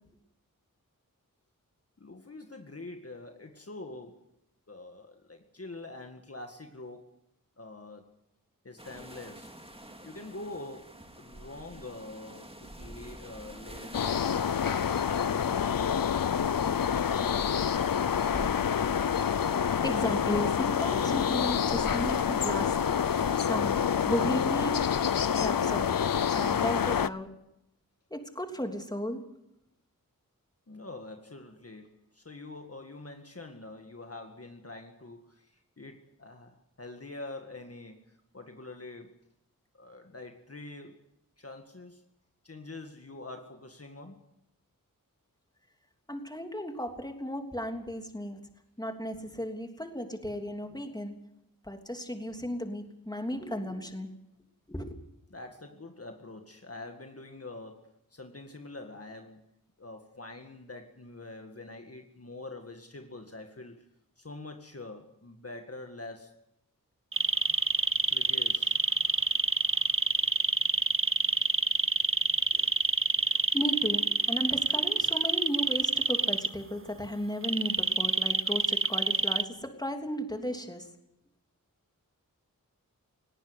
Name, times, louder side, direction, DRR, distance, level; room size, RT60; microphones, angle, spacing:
voice 1, 2.0-4.3 4.7-7.2 7.6-8.1 8.6-9.5 9.8-14.0 30.7-39.2 39.7-41.0 41.4-42.0 42.4-44.3 55.3-59.4 59.8-63.9 64.2-66.5 68.1-68.8, left 2 dB, 45° left, 4 dB, 2.0 m, -45 dB
sound 1, 8.8-23.7, right 1 dB, 15° right, 2.4 m, -47 dB
sound 2, 13.9-27.1, left 8 dB, 75° left, 0.7 m, -27 dB
voice 2, 19.3-22.8 23.4-23.8 24.0-24.9 25.3-26.0 26.3-27.3 28.1-29.2 46.1-48.4 48.8-51.1 51.6-54.1 54.7-54.9 73.5-80.9, equal, 10° left, 5 dB, 3.2 m, -35 dB
sound 3, 67.1-76.5 77.4-79.4, right 4 dB, 40° right, 1.0 m, -26 dB
19.0 x 17.5 x 9.7 m, 0.82 s
wide cardioid pair, 70°, 34 cm